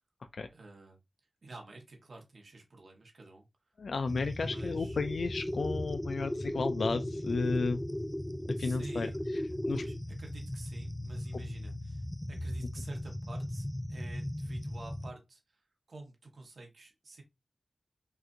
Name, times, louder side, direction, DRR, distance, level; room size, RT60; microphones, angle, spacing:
voice 1, 0.5-1.0 1.4-3.5 4.4-5.0 8.5-9.2 9.7-17.2, right 2 dB, 65° right, 1.4 m, -49 dB
voice 2, 3.8-7.8 8.6-9.8, left 4 dB, 80° left, 0.4 m, -33 dB
sound 1, 4.1-15.1, left 1 dB, 10° left, 0.4 m, -37 dB
6.1 x 2.6 x 2.7 m
wide cardioid pair, 80°, 0 cm